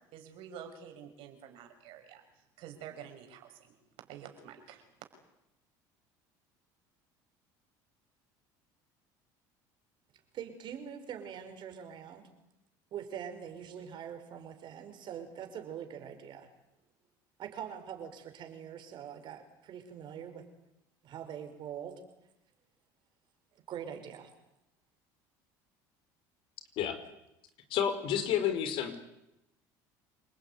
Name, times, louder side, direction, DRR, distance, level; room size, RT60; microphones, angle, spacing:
voice 1, 0.1-2.2 2.6-3.8 4.1-4.9, right 8 dB, 70° right, 6 dB, 6.0 m, -48 dB
voice 2, 10.3-12.3 12.9-16.5 17.4-20.5 21.0-22.0 23.7-24.3, right 8 dB, 55° right, 7 dB, 5.7 m, -43 dB
voice 3, 27.7-29.0, left 9 dB, 65° left, 9 dB, 4.9 m, -30 dB
28.0 x 19.5 x 9.6 m, 0.87 s
supercardioid pair, 95°, 10 cm